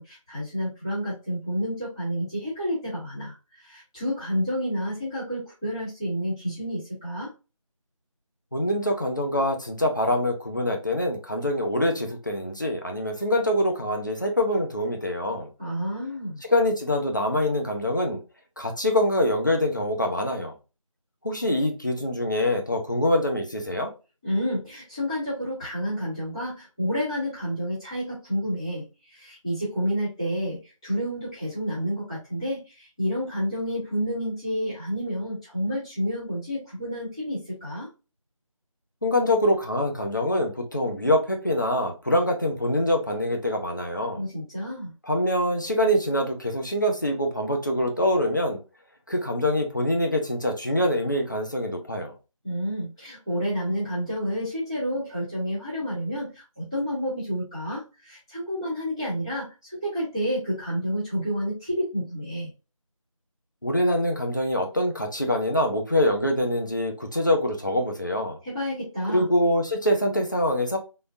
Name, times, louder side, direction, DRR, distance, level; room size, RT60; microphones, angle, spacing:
voice 1, 0.0-7.3 15.6-16.4 24.2-37.9 44.1-44.9 52.4-62.5 68.4-69.2, equal, 10° left, 1.2 m, -30 dB
voice 2, 8.5-15.5 16.5-18.2 18.6-20.5 21.2-23.9 39.0-44.2 45.1-48.6 49.1-52.1 63.6-68.4 69.1-70.8, left 1 dB, 35° left, 0.6 m, -24 dB
3.6 x 2.5 x 2.5 m
figure-of-eight pair, 175°, 18 cm